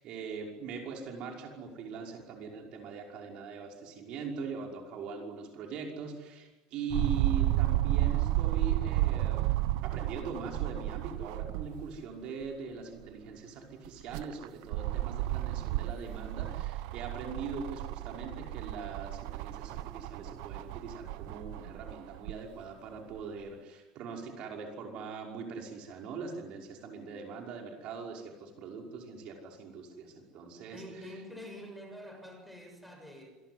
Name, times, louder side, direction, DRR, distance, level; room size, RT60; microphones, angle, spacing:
voice 1, 0.0-9.4 9.8-31.2, right 4 dB, 50° right, 1 dB, 5.7 m, -41 dB
sound 1, 6.9-12.0 12.4-12.5 13.8-22.4 23.2-23.3, right 16 dB, 75° right, 0.9 m, -32 dB
voice 2, 30.7-33.3, equal, ahead, 3 dB, 6.8 m, -46 dB
27.5 x 22.5 x 9.8 m, 1.2 s
cardioid pair, 155°, 2 cm